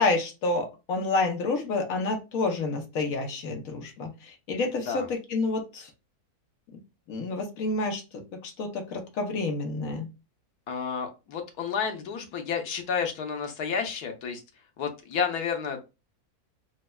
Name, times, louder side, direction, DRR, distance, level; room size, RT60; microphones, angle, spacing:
voice 1, 0.0-5.9 6.7-6.8 7.1-10.1, left 3 dB, 65° left, 3 dB, 1.2 m, -29 dB
voice 2, 10.7-14.4 14.8-15.8, left 6 dB, 90° left, 5 dB, 1.3 m, -31 dB
5.0 x 2.1 x 2.2 m, 0.27 s
omnidirectional pair, 1.6 m